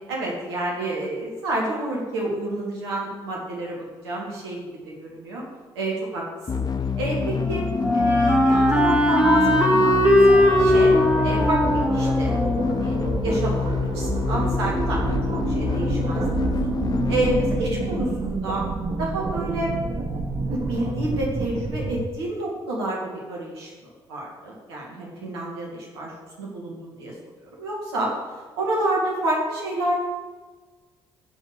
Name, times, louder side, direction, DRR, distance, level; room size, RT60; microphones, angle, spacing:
voice 1, 0.1-3.8 4.0-4.6 4.9-5.4 5.7-6.2 6.5-6.6 7.0-10.0 10.4-10.9 11.2-15.2 15.5-16.7 17.1-18.6 19.0-19.7 20.5-26.1 26.4-27.1 27.4-28.1 28.6-29.9, right 1 dB, 75° right, -3 dB, 2.4 m, -29 dB
sound 1, 6.5-18.4, left 6 dB, 30° left, 0.7 m, -27 dB
Wind instrument woodwind instrument, 6.9-13.8, left 1 dB, 10° right, 3.5 m, -20 dB
sound 2, 10.3-22.1, right 3 dB, 40° right, 1.4 m, -28 dB
15.0 x 5.8 x 6.5 m, 1.4 s
figure-of-eight pair, 45°, 13 cm